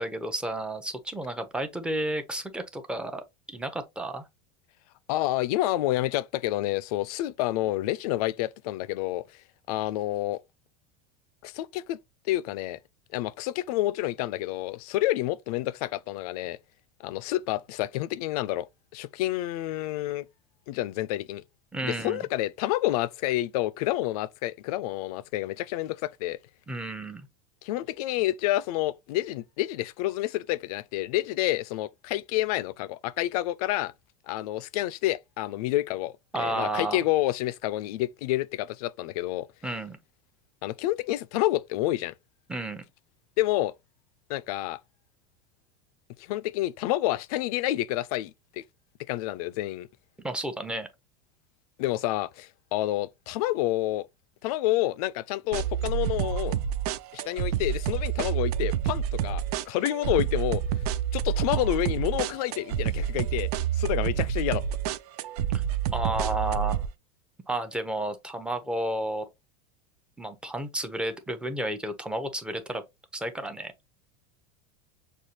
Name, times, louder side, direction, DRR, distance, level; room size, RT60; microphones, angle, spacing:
voice 1, 0.0-4.2 21.7-22.2 26.7-27.3 36.3-37.0 39.6-40.0 42.5-42.8 50.2-50.9 65.5-65.6 65.9-66.9 67.5-69.3 70.2-72.8 73.1-73.7, right 1 dB, 5° right, 0.6 m, -32 dB
voice 2, 5.1-9.3 9.7-10.4 11.4-12.0 12.3-12.8 13.1-16.6 17.0-18.7 18.9-20.3 20.7-21.4 21.8-26.4 27.6-33.9 34.3-39.5 40.6-42.1 43.4-43.7 44.3-44.8 46.2-48.6 49.1-49.9 51.8-54.1 54.4-56.6 57.1-60.6 61.1-64.6, left 15 dB, 70° left, 0.4 m, -29 dB
sound 1, 55.5-66.9, right 9 dB, 75° right, 0.5 m, -28 dB
6.4 x 2.4 x 2.8 m
supercardioid pair, 140°, 20 cm